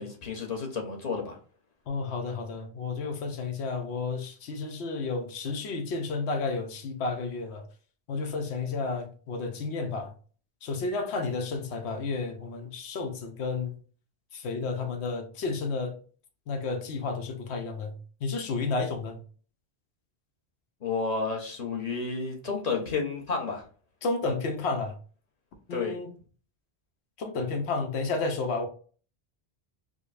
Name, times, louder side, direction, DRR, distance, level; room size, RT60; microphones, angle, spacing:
voice 1, 0.0-1.4 20.8-23.6 25.7-26.0, left 4 dB, 40° left, 1.0 m, -31 dB
voice 2, 1.9-7.6 8.1-10.1 10.6-13.8 14.3-16.0 16.5-19.2 24.0-25.0 25.7-26.1 27.2-28.7, left 3 dB, 90° left, 1.0 m, -31 dB
5.0 x 2.2 x 2.5 m
omnidirectional pair, 1.1 m